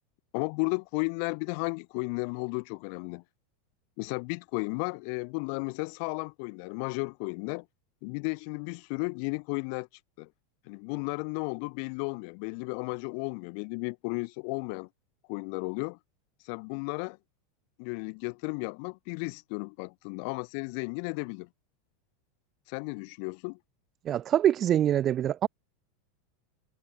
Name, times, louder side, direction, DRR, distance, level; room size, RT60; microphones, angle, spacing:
voice 1, 0.3-3.2 4.0-7.7 8.0-9.9 10.2-10.3 10.7-14.9 15.3-16.0 16.4-17.2 17.8-21.5 22.7-23.6, left 40 dB or more, 50° left, 0.6 m, -34 dB
voice 2, 24.0-25.5, right 11 dB, 25° right, 0.5 m, -24 dB
supercardioid pair, 155°, 0 cm